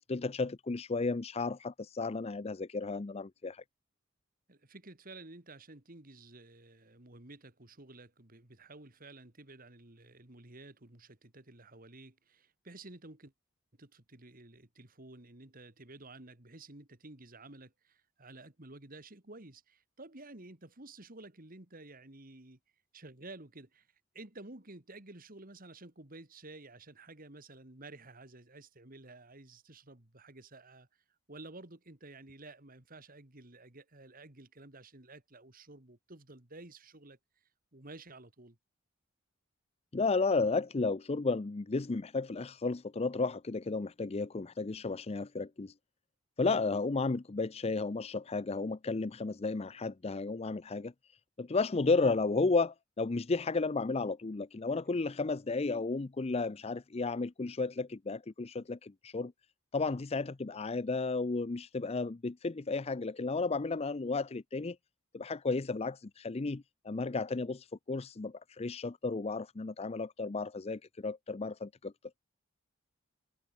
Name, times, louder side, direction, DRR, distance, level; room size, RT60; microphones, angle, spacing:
voice 1, 0.0-3.6 39.9-45.7 46.4-50.9 51.4-59.3 59.7-64.8 65.1-71.9, left 3 dB, 30° left, 0.5 m, -33 dB
voice 2, 4.5-13.3 13.8-22.6 22.9-23.9 24.1-30.9 31.3-37.2 37.7-38.6 54.9-55.0, right 2 dB, 45° right, 2.5 m, -52 dB
head